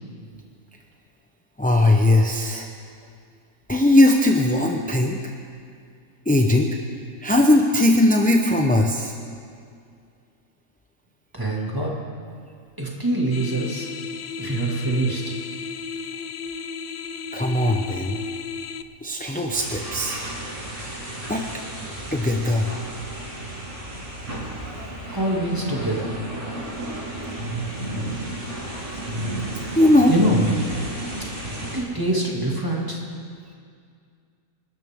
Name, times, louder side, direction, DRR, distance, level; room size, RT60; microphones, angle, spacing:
voice 1, 1.6-2.7 3.7-5.2 6.3-6.8 7.2-9.1 17.3-18.2 19.0-20.2 21.3-21.4 22.1-22.7 29.8-30.1, left 1 dB, 10° left, 1 dB, 0.6 m, -19 dB
voice 2, 11.3-11.9 12.8-13.9 14.4-15.4 25.1-26.2 30.1-30.6 31.7-33.0, right 1 dB, 15° right, -3 dB, 2.3 m, -24 dB
sound 1, 13.3-18.8, left 5 dB, 80° left, 0.4 m, -34 dB
sound 2, 19.5-31.8, right 1 dB, 60° right, 3.7 m, -32 dB
28.0 x 12.5 x 3.7 m, 2.2 s
omnidirectional pair, 1.5 m